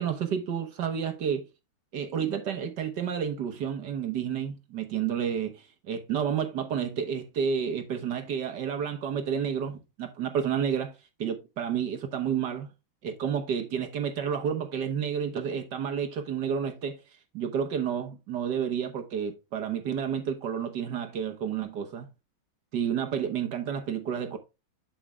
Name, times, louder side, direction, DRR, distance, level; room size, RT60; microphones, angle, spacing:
voice 1, 0.0-1.5 1.9-10.9 11.2-12.7 13.0-17.0 17.3-22.1 22.7-24.4, right 7 dB, 60° right, 1.5 m, -30 dB
7.9 x 7.6 x 2.2 m
omnidirectional pair, 2.3 m